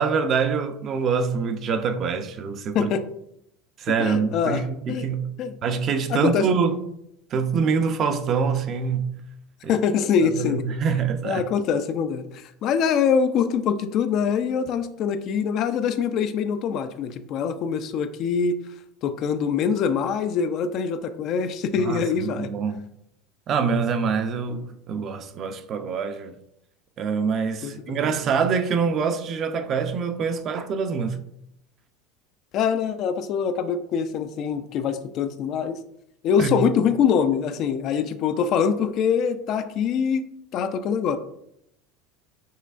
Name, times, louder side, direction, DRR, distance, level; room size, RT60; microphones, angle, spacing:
voice 1, 0.0-2.9 3.8-5.3 5.6-6.8 7.3-9.2 9.6-9.8 10.2-11.4 21.8-22.8 23.5-26.4 27.0-31.2 36.4-36.7, right 5 dB, 45° right, 0.5 m, -25 dB
voice 2, 4.0-4.6 4.9-5.1 5.4-5.5 6.1-6.5 9.7-10.6 11.2-18.6 19.0-22.5 27.6-27.7 28.0-28.1 32.5-35.8 36.2-41.2, left 7 dB, 50° left, 0.4 m, -24 dB
5.6 x 3.1 x 2.5 m
hypercardioid pair, 95°, 0 cm